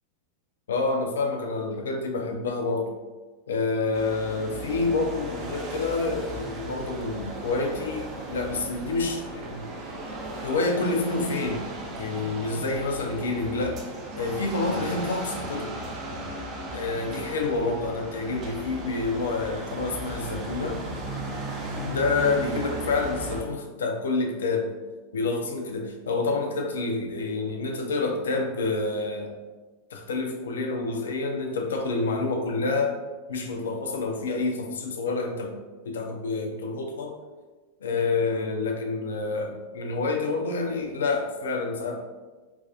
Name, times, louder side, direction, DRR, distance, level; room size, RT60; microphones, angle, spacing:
voice 1, 0.7-2.9 3.5-9.7 10.4-11.6 12.0-13.8 14.2-15.7 16.7-20.8 21.8-24.7 25.1-29.3 29.9-33.0 33.3-35.5 35.8-37.1 37.8-42.0, left 3 dB, 65° left, 3 dB, 0.3 m, -28 dB
sound 1, 3.9-23.4, right 1 dB, 30° right, 0.4 m, -36 dB
2.4 x 2.2 x 2.4 m, 1.3 s
figure-of-eight pair, 90°, 0 cm